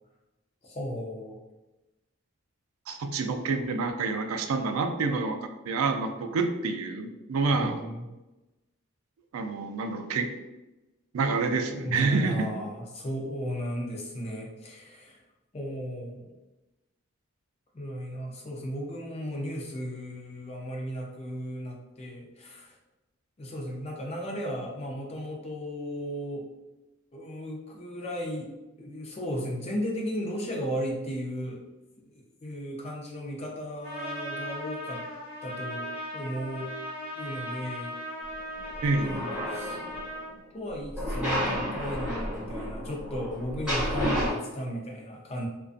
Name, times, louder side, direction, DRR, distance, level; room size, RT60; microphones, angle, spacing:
voice 1, 0.6-1.4 4.5-4.7 7.5-8.1 11.7-15.2 15.5-16.3 17.7-22.8 23.4-26.5 27.1-28.5 28.8-31.6 32.4-35.0 35.4-36.7 37.2-38.0 39.0-39.9 40.5-45.5, equal, 30° left, -1 dB, 0.4 m, -35 dB
voice 2, 2.9-5.4 5.7-7.8 9.3-10.3 11.1-12.5 38.8-39.2, right 4 dB, 85° right, 7 dB, 0.3 m, -28 dB
Trumpet, 33.8-40.3, equal, 65° left, 0.9 m, -38 dB
sound 1, 38.6-40.1 40.9-44.3, equal, 5° right, 1.1 m, -31 dB
2.5 x 2.2 x 2.4 m, 1.0 s
head